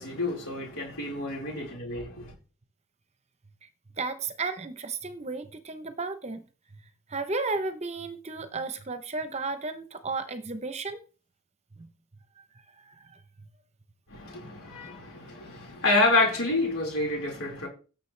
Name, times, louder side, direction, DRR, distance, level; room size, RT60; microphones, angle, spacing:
voice 1, 0.0-2.3 14.1-17.7, left 2 dB, 70° left, 4.7 m, -28 dB
voice 2, 4.0-6.4 7.1-11.0 12.9-13.2, right 3 dB, 30° right, 0.8 m, -33 dB
17.5 x 7.0 x 3.3 m
head